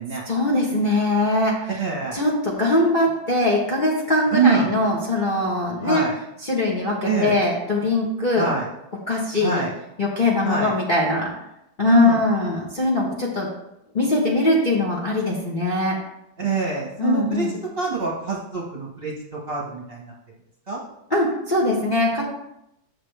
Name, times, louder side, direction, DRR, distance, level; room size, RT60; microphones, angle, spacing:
voice 1, 0.2-1.7 2.1-6.0 6.4-8.5 9.1-9.6 10.0-11.3 11.8-13.5 13.9-16.0 17.0-17.5 21.1-22.2, left 2 dB, 30° left, -4 dB, 1.1 m, -21 dB
voice 2, 1.8-2.2 4.3-4.7 5.8-6.1 7.0-7.3 8.4-8.7 9.4-9.7 10.4-10.7 11.8-12.2 16.4-20.1 20.7-20.8, right 5 dB, 35° right, -4 dB, 1.3 m, -24 dB
8.7 x 6.7 x 3.4 m, 0.85 s
omnidirectional pair, 2.1 m